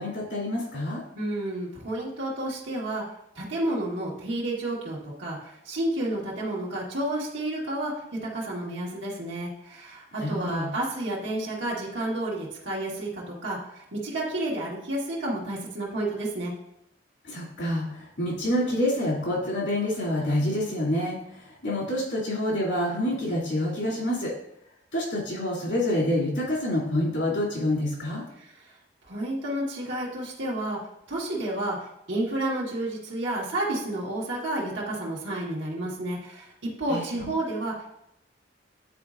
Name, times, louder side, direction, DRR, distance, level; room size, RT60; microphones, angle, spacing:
voice 1, 0.0-1.0 10.2-10.7 17.2-21.2 21.6-24.3 24.9-28.2 36.9-37.3, left 1 dB, 80° left, -5 dB, 2.5 m, -27 dB
voice 2, 1.1-3.0 3.3-7.9 8.2-16.5 28.4-28.5 29.1-30.8 31.1-37.9, right 1 dB, 85° right, -5 dB, 1.4 m, -31 dB
9.4 x 4.1 x 2.5 m, 0.77 s
head